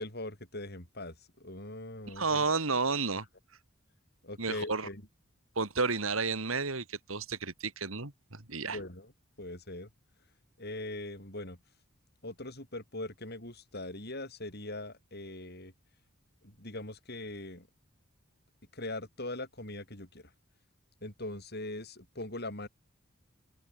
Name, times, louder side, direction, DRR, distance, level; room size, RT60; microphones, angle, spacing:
voice 1, 0.0-2.5 2.9-3.0 4.2-5.1 8.7-9.1 9.4-9.9 10.6-11.6 12.2-15.7 16.4-17.7 18.7-20.3 21.0-22.7, left 2 dB, 50° left, 7.9 m, -41 dB
voice 2, 2.1-3.2 4.4-4.9 5.6-8.8, right 4 dB, 85° right, 2.8 m, -31 dB
open air
head